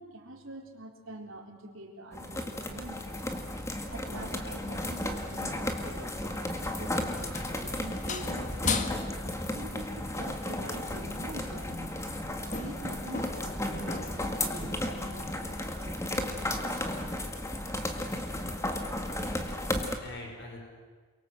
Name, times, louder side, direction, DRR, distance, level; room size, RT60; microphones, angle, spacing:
voice 1, 0.0-3.1 3.9-9.1 9.5-12.0 12.5-16.3 16.6-16.9, right 1 dB, 60° right, 1 dB, 4.1 m, -45 dB
sound 1, 2.1-20.0, left 1 dB, 15° left, 2.0 m, -34 dB
sound 2, 4.8-5.7 6.4-6.7 7.0-9.6 10.7-11.1 11.4-15.6 15.9-16.2 16.5-16.8 17.2-17.4 17.8-18.2 18.4-18.8 19.1-19.5, left 4 dB, 35° left, 1.5 m, -39 dB
voice 2, 18.8-19.5 19.7-20.6, left 2 dB, 50° left, 1 dB, 6.0 m, -46 dB
29.5 x 23.0 x 8.0 m, 1.5 s
head